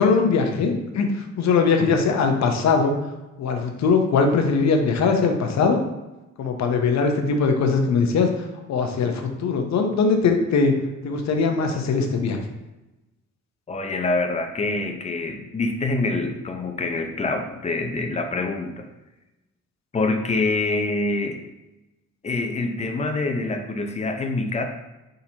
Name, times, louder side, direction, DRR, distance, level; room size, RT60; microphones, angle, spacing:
voice 1, 0.0-2.9 3.4-5.8 6.4-8.3 8.7-10.7 11.0-12.4, left 4 dB, 65° left, 4 dB, 0.8 m, -21 dB
voice 2, 13.7-18.9 19.9-21.4 22.2-24.6, left 3 dB, 20° left, 4 dB, 0.6 m, -25 dB
4.3 x 3.9 x 2.8 m, 1.0 s
cardioid pair, 90°, 30 cm